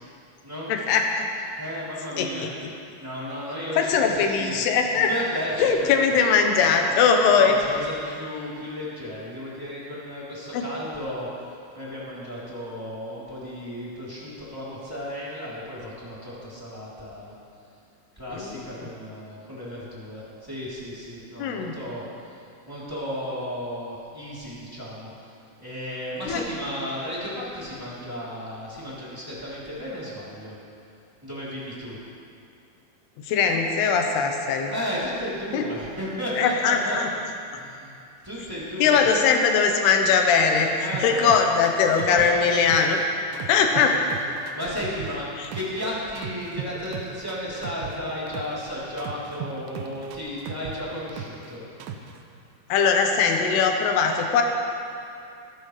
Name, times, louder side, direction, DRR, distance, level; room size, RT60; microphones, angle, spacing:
voice 1, 0.7-1.3 2.2-2.5 3.8-5.1 5.6-7.6 10.5-10.6 18.3-18.6 21.4-21.8 26.3-26.4 33.2-34.7 35.5-35.7 36.4-37.1 38.8-43.0 43.5-44.1 45.4-45.5 52.7-54.4, left 6 dB, 70° left, 3 dB, 2.7 m, -21 dB
voice 2, 1.5-2.5 3.0-4.6 4.8-6.2 6.6-6.9 7.3-17.3 18.1-25.3 25.6-30.6 31.2-32.0 34.7-37.0 37.5-38.0 38.2-39.1 40.7-41.4 41.9-42.4 43.3-43.4 44.4-51.6, equal, 5° right, -9 dB, 2.5 m, -34 dB
sound 1, 40.9-43.0 43.3-45.8 46.2-48.6 49.0-51.5 51.8-52.2, right 8 dB, 85° right, 2.1 m, -36 dB
20.5 x 12.5 x 3.3 m, 2.5 s
omnidirectional pair, 5.4 m